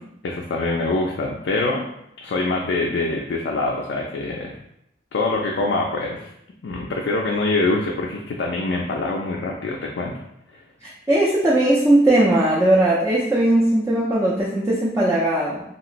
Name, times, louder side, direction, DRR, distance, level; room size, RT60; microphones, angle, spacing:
voice 1, 0.2-1.8 2.2-4.6 5.1-6.3 6.6-10.1, left 2 dB, 70° left, -2 dB, 0.4 m, -24 dB
voice 2, 10.8-15.6, right 1 dB, 15° right, -8 dB, 0.4 m, -18 dB
2.9 x 2.9 x 2.5 m, 0.78 s
head